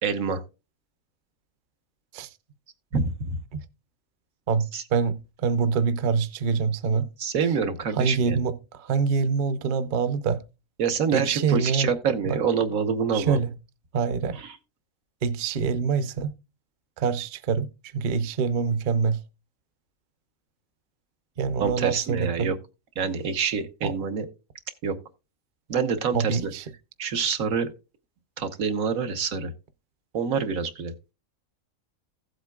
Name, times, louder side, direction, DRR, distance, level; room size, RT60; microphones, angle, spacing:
voice 1, 0.0-0.4 2.9-3.4 4.7-4.8 7.2-8.4 10.8-13.4 14.3-14.6 21.6-22.6 23.0-24.3 24.8-25.0 25.7-26.5 27.0-27.7 28.4-29.5 30.1-30.9, right 6 dB, 85° right, 1.5 m, -26 dB
voice 2, 4.5-7.1 8.0-10.4 11.1-11.9 12.2-12.4 13.1-13.5 13.9-14.4 15.2-16.3 17.0-19.2 21.4-22.5 23.8-23.9 26.1-26.6, right 5 dB, 45° right, 0.7 m, -25 dB
15.5 x 7.9 x 2.3 m
omnidirectional pair, 1.4 m